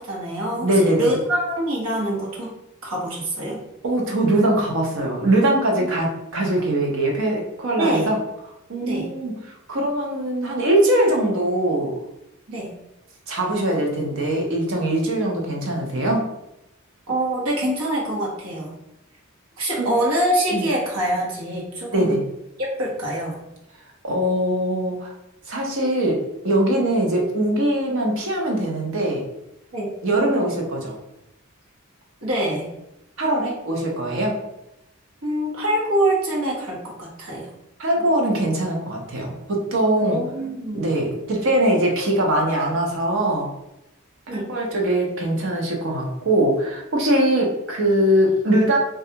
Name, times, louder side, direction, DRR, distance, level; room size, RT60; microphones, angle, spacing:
voice 1, 0.0-2.5 2.8-3.6 5.8-5.9 7.7-8.1 8.8-9.1 12.5-12.7 17.1-18.7 19.6-22.2 22.8-23.4 29.7-29.9 32.2-32.7 35.2-37.5 39.9-40.9 44.3-44.5, right 1 dB, 80° right, -3 dB, 1.1 m, -25 dB
voice 2, 0.6-1.1 3.8-8.2 8.7-9.3 9.7-11.9 13.3-16.3 19.8-19.9 20.5-20.6 21.9-22.2 24.0-25.1 25.5-29.2 30.0-31.0 33.2-34.4 37.8-40.2 40.7-43.5 44.3-48.8, right 1 dB, 65° right, 0 dB, 0.8 m, -21 dB
3.2 x 2.4 x 2.8 m, 0.90 s
head